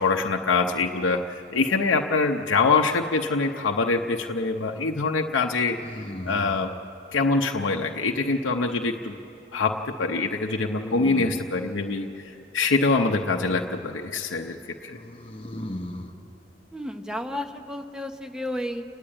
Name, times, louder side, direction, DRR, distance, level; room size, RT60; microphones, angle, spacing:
voice 1, 0.0-5.8 6.3-6.7 7.1-9.1 9.5-14.6 14.8-15.0, left 3 dB, 90° left, 2 dB, 0.7 m, -24 dB
sound 1, 3.0-3.7 5.8-6.7 10.5-11.6 14.9-16.2, left 1 dB, 30° left, 0.9 m, -36 dB
voice 2, 16.7-18.8, left 1 dB, 5° right, 5 dB, 0.8 m, -32 dB
29.5 x 10.0 x 8.7 m, 2.9 s
head